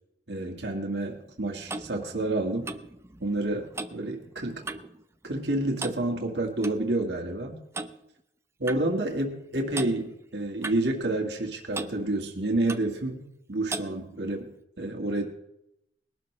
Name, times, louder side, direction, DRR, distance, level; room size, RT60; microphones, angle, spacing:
voice 1, 0.3-2.7 3.2-4.6 5.2-7.6 8.6-15.2, right 2 dB, 70° right, 2 dB, 1.8 m, -29 dB
Clock, 1.1-5.0 5.3-5.5 5.8-6.8 7.7-8.0 8.7-8.8 9.7-9.9 10.6-11.5 11.7-12.0 12.7-12.9 13.7-13.9, right 3 dB, 15° right, 0.6 m, -38 dB
20.5 x 12.0 x 3.3 m, 0.82 s
head